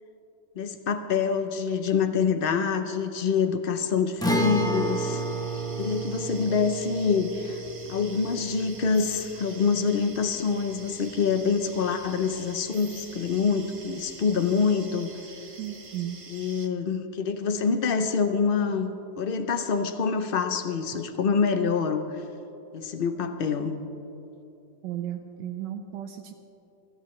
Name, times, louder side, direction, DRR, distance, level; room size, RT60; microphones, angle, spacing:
voice 1, 0.6-5.2 5.8-7.6 7.9-15.1 16.3-22.2 22.7-23.8, left 5 dB, 90° left, 7 dB, 0.4 m, -26 dB
Guitar, 4.2-11.8 12.1-12.2 14.2-14.3, right 2 dB, 5° left, 0.7 m, -32 dB
sound 1, 4.4-16.7, right 3 dB, 40° right, 0.4 m, -46 dB
voice 2, 15.6-16.2 24.8-26.3, right 11 dB, 80° right, 3 dB, 1.3 m, -35 dB
24.5 x 13.5 x 3.2 m, 3.0 s
omnidirectional pair, 1.9 m